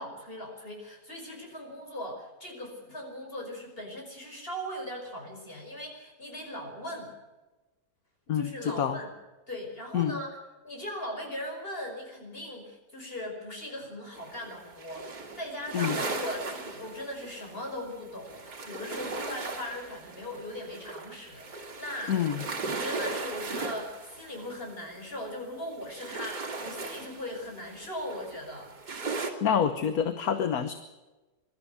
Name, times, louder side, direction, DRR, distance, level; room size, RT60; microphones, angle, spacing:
voice 1, 0.0-7.1 8.3-9.1 9.5-10.4 10.6-22.2 22.6-28.7, left 1 dB, 35° left, 1 dB, 5.8 m, -39 dB
voice 2, 8.3-9.0 9.9-10.2 15.7-16.0 22.1-22.4 29.4-30.7, left 8 dB, 65° left, 9 dB, 1.5 m, -27 dB
sound 1, 14.2-25.4 25.7-29.3, right 3 dB, 85° right, 3.0 m, -38 dB
22.5 x 13.0 x 9.2 m, 1.1 s
omnidirectional pair, 1.7 m